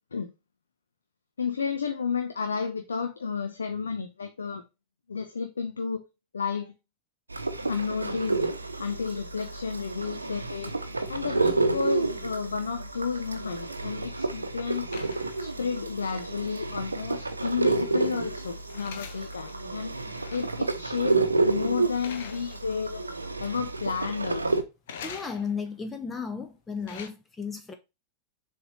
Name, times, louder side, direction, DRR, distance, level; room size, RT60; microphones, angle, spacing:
voice 1, 1.4-4.6 5.1-6.0 6.3-6.7 7.7-8.4 8.8-10.7 11.1-14.9 15.4-19.9 20.3-23.0 23.4-24.5, left 5 dB, 70° left, 0.7 m, -32 dB
sound 1, 7.3-24.6, right 3 dB, 80° right, 0.7 m, -30 dB
sound 2, 13.6-14.4 14.9-15.9 16.1-16.2 17.5-20.7 21.1-21.4 22.0-23.0 23.3-23.9 24.9-25.7 26.5-27.1, left 7 dB, 55° left, 1.0 m, -46 dB
voice 2, 25.0-27.7, left 5 dB, 15° left, 0.9 m, -34 dB
7.0 x 3.5 x 4.0 m
figure-of-eight pair, 90°, 0 cm